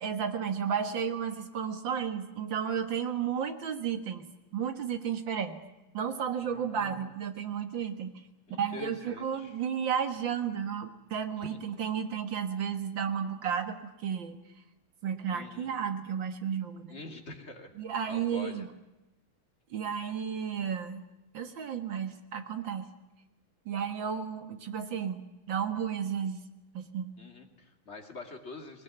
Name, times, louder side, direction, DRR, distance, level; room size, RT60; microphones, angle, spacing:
voice 1, 0.0-5.6 5.9-8.2 8.6-14.4 15.0-16.9 17.8-18.7 19.7-21.1 21.3-22.9 23.7-25.2 25.5-26.4 26.7-27.1, right 7 dB, 70° right, 8 dB, 2.4 m, -33 dB
voice 2, 6.4-7.1 8.5-9.6 11.4-11.6 15.3-15.7 16.9-17.7 18.1-18.7 27.2-28.8, left 2 dB, 35° left, 4 dB, 2.7 m, -45 dB
20.0 x 20.0 x 9.5 m, 0.98 s
omnidirectional pair, 2.2 m